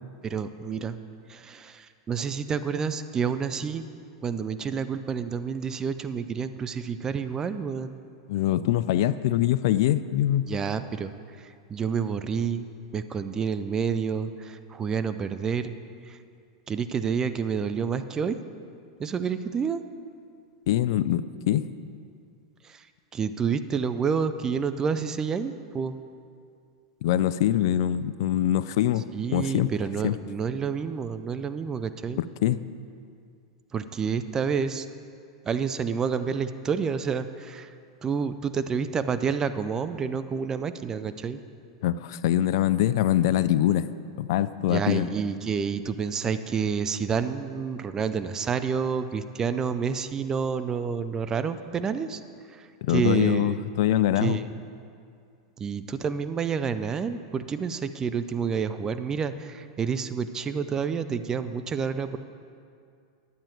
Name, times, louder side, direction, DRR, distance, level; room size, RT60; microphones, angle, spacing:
voice 1, 0.2-1.0 1.3-3.8 4.2-8.0 10.5-15.7 16.0-16.2 16.7-18.4 19.0-19.8 22.6-22.9 23.1-26.0 29.1-32.2 33.7-34.9 35.5-37.7 38.0-41.4 44.7-52.2 52.5-53.6 54.2-54.5 55.6-62.2, right 6 dB, 25° right, 11 dB, 0.5 m, -29 dB
voice 2, 8.3-10.5 20.7-21.7 27.0-29.0 29.3-29.7 30.0-30.2 32.4-32.6 41.8-43.9 44.2-45.1 52.8-54.4, left 12 dB, 65° left, 15 dB, 0.3 m, -23 dB
11.0 x 9.0 x 4.6 m, 2.4 s
hypercardioid pair, 100°, 2 cm